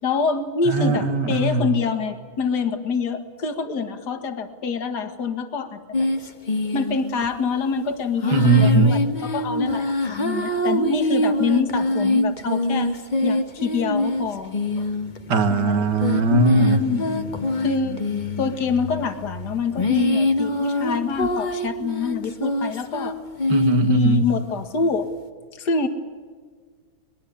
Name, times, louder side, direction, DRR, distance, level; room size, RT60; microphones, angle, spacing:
voice 1, 0.0-6.1 6.7-12.9 13.2-14.9 15.5-15.8 16.8-17.0 17.6-18.0 18.4-23.2 23.9-25.1 25.5-25.9, left 5 dB, 55° left, 7 dB, 2.4 m, -26 dB
voice 2, 0.7-1.7 8.3-9.0 15.3-16.8 23.5-24.3, right 3 dB, 60° right, 9 dB, 2.2 m, -19 dB
sound 1, 5.9-7.3 8.2-24.1, left 1 dB, 25° left, 1.3 m, -24 dB
23.5 x 21.0 x 8.5 m, 1.5 s
omnidirectional pair, 2.2 m